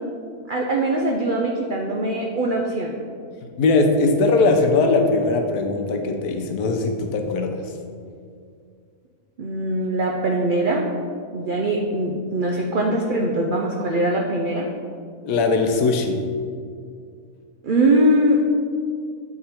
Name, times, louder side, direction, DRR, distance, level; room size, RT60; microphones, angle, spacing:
voice 1, 0.5-3.1 9.4-10.9 11.3-14.7 17.6-18.5, right 1 dB, 80° right, -1 dB, 0.4 m, -22 dB
voice 2, 3.4-7.6 15.2-16.2, left 3 dB, 85° left, 4 dB, 1.2 m, -20 dB
7.7 x 3.6 x 4.3 m, 2.2 s
omnidirectional pair, 1.6 m